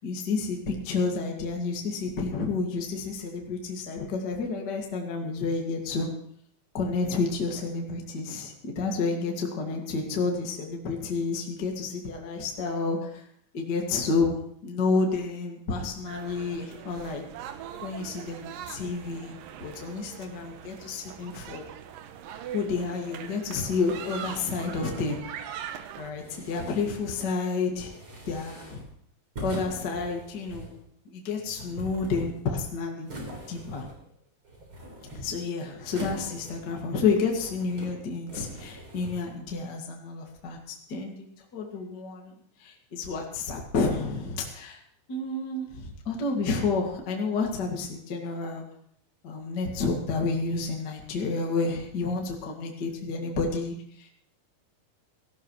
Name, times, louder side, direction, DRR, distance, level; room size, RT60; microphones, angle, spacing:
voice 1, 0.0-6.1 6.7-13.2 13.5-17.2 17.8-19.3 19.6-21.7 22.5-25.3 26.0-27.9 28.2-28.8 29.4-30.7 31.1-33.1 33.5-33.9 35.1-41.3 41.5-42.3 42.6-44.8 45.1-48.6 49.2-54.1, left 4 dB, 40° left, 0 dB, 1.6 m, -30 dB
sound 1, 16.1-26.1, right 9 dB, 85° right, 2.0 m, -42 dB
sound 2, 23.8-25.3 26.1-27.2 27.7-28.9 29.4-30.8 31.4-32.6 33.1-34.1 34.4-35.4 35.9-36.8 37.2-37.9 38.3-39.2, right 1 dB, 30° right, 4.1 m, -42 dB
17.5 x 15.5 x 3.2 m, 0.66 s
omnidirectional pair, 5.1 m